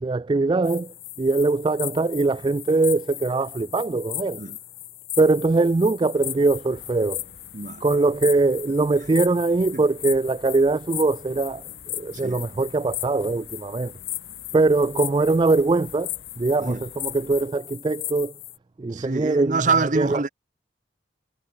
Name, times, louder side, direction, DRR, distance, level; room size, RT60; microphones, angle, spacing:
voice 1, 0.0-4.4 5.2-7.2 7.8-11.6 11.9-13.9 14.5-18.3 18.8-19.6 20.0-20.2, right 3 dB, 25° right, 0.3 m, -22 dB
sound 1, 0.6-18.6, left 15 dB, 50° left, 3.2 m, -37 dB
sound 2, 6.1-17.5, left 1 dB, 70° left, 4.8 m, -52 dB
voice 2, 18.9-20.3, right 4 dB, 45° right, 1.0 m, -25 dB
head